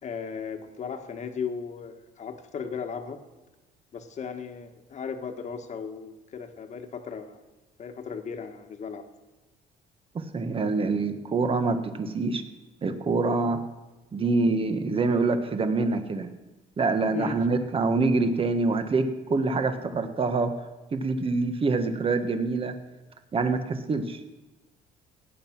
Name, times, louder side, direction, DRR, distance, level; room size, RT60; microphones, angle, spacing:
voice 1, 0.0-3.2 3.9-7.4 7.8-9.0 17.1-17.4, left 6 dB, 45° left, 7 dB, 1.6 m, -36 dB
voice 2, 10.1-12.4 12.8-13.6 14.1-16.3 16.8-20.5 20.9-22.8 23.3-24.2, right 3 dB, 35° right, 8 dB, 1.5 m, -25 dB
17.0 x 9.4 x 6.1 m, 1.1 s
cardioid pair, 110°, 17 cm